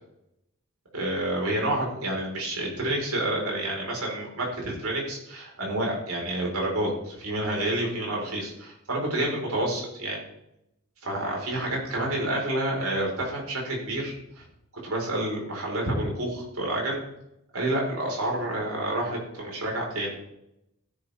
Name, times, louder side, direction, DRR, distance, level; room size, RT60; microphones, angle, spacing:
voice 1, 0.9-10.2 11.0-14.4 14.8-17.0 17.5-20.2, right 1 dB, 85° right, -2 dB, 5.0 m, -29 dB
15.5 x 10.5 x 3.7 m, 0.83 s
head